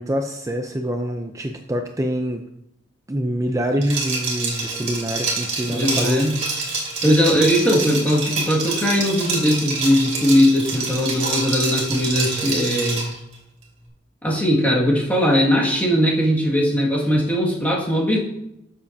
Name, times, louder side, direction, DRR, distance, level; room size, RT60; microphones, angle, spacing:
voice 1, 0.0-2.4 3.1-6.5, equal, 15° right, 4 dB, 0.5 m, -25 dB
Liquid, 3.8-13.2, right 4 dB, 40° right, 2.9 m, -27 dB
voice 2, 5.7-6.4 7.0-13.1 14.2-18.2, equal, 10° left, -4 dB, 2.0 m, -19 dB
12.5 x 7.2 x 2.8 m, 0.82 s
head